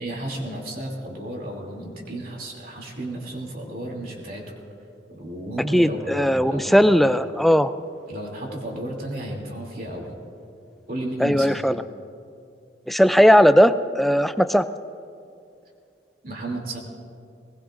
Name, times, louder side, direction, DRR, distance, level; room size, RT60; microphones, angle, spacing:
voice 1, 0.0-4.6 5.1-7.0 8.1-10.1 10.9-11.6 16.2-16.8, right 1 dB, 50° right, -1 dB, 2.8 m, -33 dB
voice 2, 5.7-7.7 11.2-11.8 12.9-14.7, equal, ahead, 11 dB, 0.3 m, -17 dB
21.0 x 19.5 x 2.5 m, 2.4 s
head